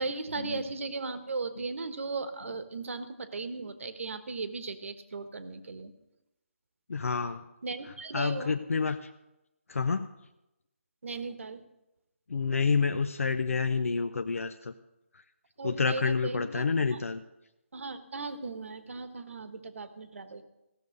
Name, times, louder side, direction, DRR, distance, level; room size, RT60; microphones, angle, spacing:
voice 1, 0.0-5.9 7.6-8.6 11.0-11.6 15.6-17.0 17.7-20.4, right 3 dB, 65° right, 10 dB, 1.2 m, -37 dB
voice 2, 6.9-7.4 8.1-9.1 9.7-10.1 12.3-14.7 15.6-17.2, left 5 dB, 85° left, 9 dB, 0.6 m, -28 dB
16.0 x 6.9 x 6.4 m, 0.94 s
hypercardioid pair, 170°, 7 cm